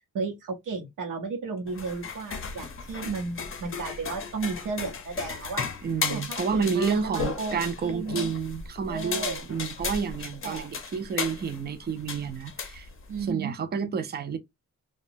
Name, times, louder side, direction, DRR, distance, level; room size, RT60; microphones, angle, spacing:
voice 1, 0.1-5.6 6.1-8.3 8.9-9.4 10.4-10.7 13.1-13.5, right 4 dB, 90° right, 0.7 m, -34 dB
sound 1, 1.7-13.3, left 5 dB, 45° left, 0.6 m, -35 dB
voice 2, 5.8-12.9 13.2-14.4, right 6 dB, 35° right, 0.4 m, -30 dB
2.8 x 2.1 x 2.5 m
wide cardioid pair, 160°, 31 cm